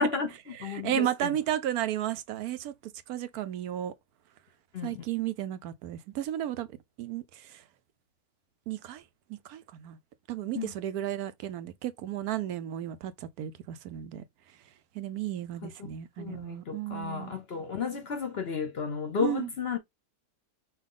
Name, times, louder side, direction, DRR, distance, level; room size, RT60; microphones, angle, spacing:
voice 1, 0.0-1.3 4.7-5.0 10.5-10.7 15.6-15.7 16.2-19.8, left 5 dB, 55° left, 0.7 m, -32 dB
voice 2, 0.6-3.9 4.8-6.7 7.0-7.6 8.7-9.0 9.3-10.0 10.3-14.2 14.9-17.3 19.2-19.5, right 12 dB, 80° right, 1.1 m, -33 dB
5.6 x 2.4 x 3.7 m
omnidirectional pair, 1.6 m